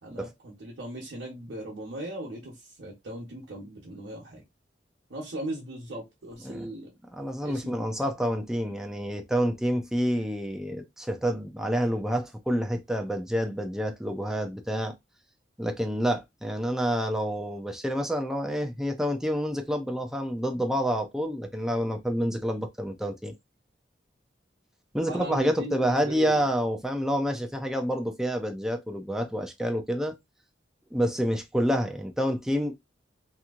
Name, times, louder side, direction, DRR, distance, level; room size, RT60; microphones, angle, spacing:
voice 1, 0.0-4.4 5.1-6.9 7.4-8.1 25.1-26.5, right 1 dB, 90° right, 0.9 m, -38 dB
voice 2, 7.2-14.9 15.6-23.3 24.9-30.1 30.9-32.8, equal, 5° right, 0.5 m, -28 dB
2.9 x 2.6 x 2.4 m
head